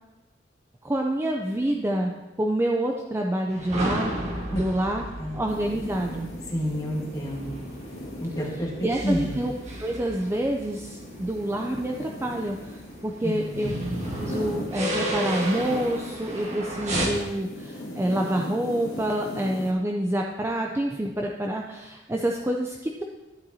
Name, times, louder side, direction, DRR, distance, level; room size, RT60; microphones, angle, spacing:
voice 1, 0.8-2.1 2.4-4.1 4.5-5.0 5.3-6.3 8.8-9.5 9.8-13.7 14.2-23.0, right 1 dB, 15° right, 0 dB, 0.5 m, -27 dB
sound 1, 3.5-17.1, right 1 dB, 40° right, 1.5 m, -34 dB
sound 2, 5.5-16.6 16.8-19.7, left 1 dB, 90° left, 2.0 m, -39 dB
voice 2, 6.5-7.6 8.2-9.4 13.2-13.7, equal, 20° left, -4 dB, 1.6 m, -29 dB
11.5 x 8.8 x 2.8 m, 1.1 s
head